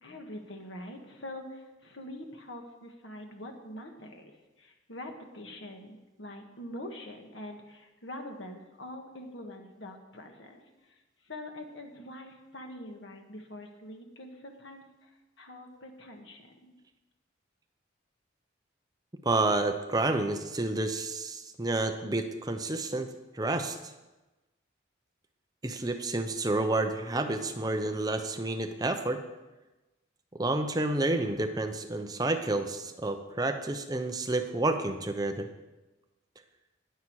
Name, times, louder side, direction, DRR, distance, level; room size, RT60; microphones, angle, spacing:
voice 1, 0.0-11.0 11.2-16.7, left 1 dB, 75° left, 3 dB, 1.7 m, -44 dB
voice 2, 19.2-23.1 23.3-23.8 25.6-29.2 30.3-35.5, right 2 dB, 20° right, 6 dB, 0.7 m, -29 dB
19.0 x 7.4 x 4.7 m, 1.1 s
head